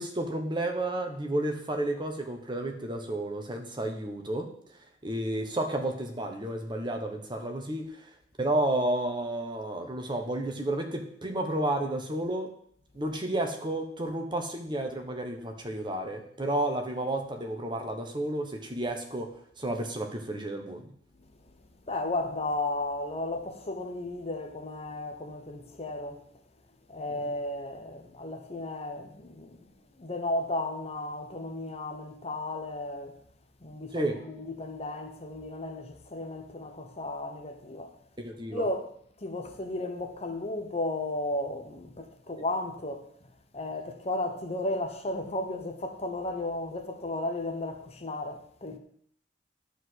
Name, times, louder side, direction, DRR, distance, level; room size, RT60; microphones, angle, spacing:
voice 1, 0.0-4.5 5.0-8.1 8.4-12.5 12.9-19.3 19.6-20.9 33.9-34.2 38.2-38.6, right 1 dB, 25° right, 1.3 m, -31 dB
voice 2, 21.9-26.2 26.9-29.7 30.0-33.2 33.6-38.0 38.5-43.0 43.5-48.8, left 2 dB, 35° left, 0.9 m, -34 dB
11.0 x 4.9 x 8.0 m
head